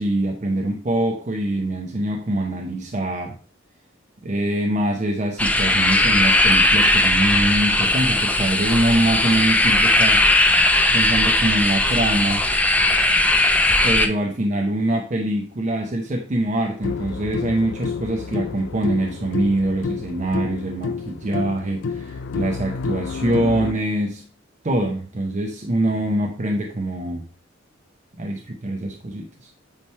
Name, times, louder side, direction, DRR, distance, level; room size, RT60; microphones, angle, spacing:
voice 1, 0.0-3.4 4.2-10.3 10.9-12.5 13.8-24.2 24.6-27.2 28.2-29.5, right 1 dB, 35° right, 3 dB, 0.6 m, -24 dB
sound 1, 5.4-14.1, left 1 dB, 5° left, 0.5 m, -18 dB
sound 2, 16.8-23.7, left 5 dB, 60° left, 0.4 m, -29 dB
8.5 x 3.2 x 4.4 m, 0.42 s
head